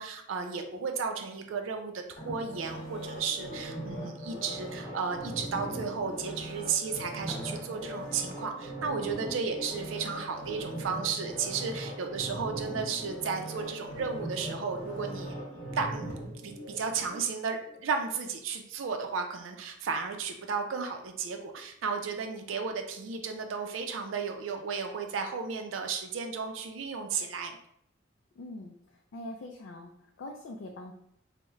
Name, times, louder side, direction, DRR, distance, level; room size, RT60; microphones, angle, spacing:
voice 1, 0.0-15.3 15.7-16.1 16.4-27.5, right 5 dB, 90° right, 5 dB, 0.4 m, -34 dB
sound 1, 2.2-17.2 17.6-17.7, right 1 dB, 45° left, 1.1 m, -40 dB
sound 2, 7.3-12.3, left 1 dB, ahead, 0.3 m, -52 dB
voice 2, 28.4-29.9 30.2-30.9, left 1 dB, 80° left, 2 dB, 0.3 m, -43 dB
3.1 x 2.1 x 3.5 m, 0.71 s
head